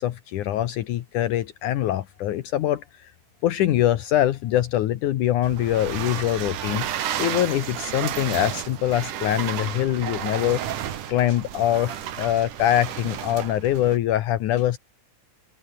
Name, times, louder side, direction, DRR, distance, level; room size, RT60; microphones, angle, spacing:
voice 1, 0.0-3.1 3.4-6.9 7.2-10.6 11.1-14.8, left 12 dB, 70° left, 2.5 m, -23 dB
sound 1, 5.4-14.0, right 10 dB, 70° right, 3.2 m, -32 dB
omnidirectional pair, 3.8 m